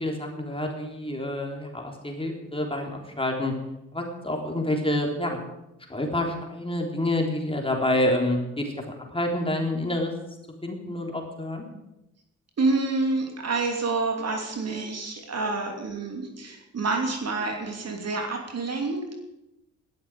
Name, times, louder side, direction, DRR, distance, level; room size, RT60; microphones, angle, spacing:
voice 1, 0.0-3.5 3.9-5.4 5.9-8.8 9.1-10.1 10.6-11.6, left 1 dB, 15° left, 1 dB, 3.7 m, -28 dB
voice 2, 12.6-19.1, right 3 dB, 40° right, 3 dB, 2.9 m, -28 dB
20.0 x 12.0 x 5.0 m, 0.90 s
figure-of-eight pair, 40°, 37 cm